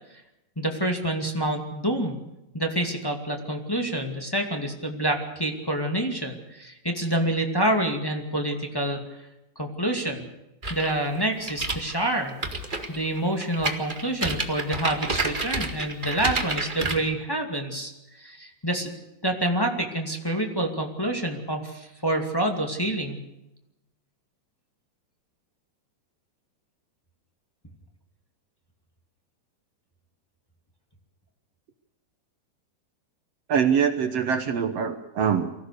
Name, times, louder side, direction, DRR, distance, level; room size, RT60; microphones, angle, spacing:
voice 1, 0.6-2.2 2.5-9.0 9.6-10.2 10.7-12.4 12.9-17.9 18.2-18.9 19.2-23.2, right 1 dB, 10° left, 2 dB, 1.7 m, -27 dB
sound 1, 10.6-17.0, right 3 dB, 25° right, 1.1 m, -30 dB
voice 2, 33.5-35.5, right 7 dB, 60° right, 8 dB, 1.8 m, -24 dB
24.0 x 16.5 x 6.7 m, 0.92 s
omnidirectional pair, 4.0 m